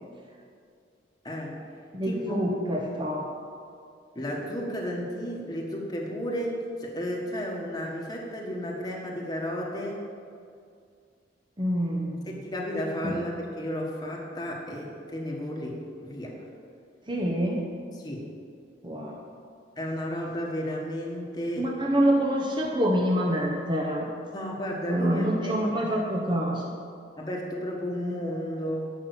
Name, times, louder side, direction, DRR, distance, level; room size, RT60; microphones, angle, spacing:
voice 1, 1.2-1.6 2.1-2.4 4.1-10.1 12.3-16.4 17.9-18.3 19.8-21.7 24.3-25.9 27.2-28.9, equal, 20° left, -2 dB, 1.4 m, -33 dB
voice 2, 1.9-3.3 11.6-12.3 13.0-13.3 17.1-17.7 18.8-19.2 21.6-24.1 24.9-26.7, equal, 25° right, -1 dB, 1.0 m, -26 dB
11.0 x 5.8 x 8.1 m, 2.3 s
head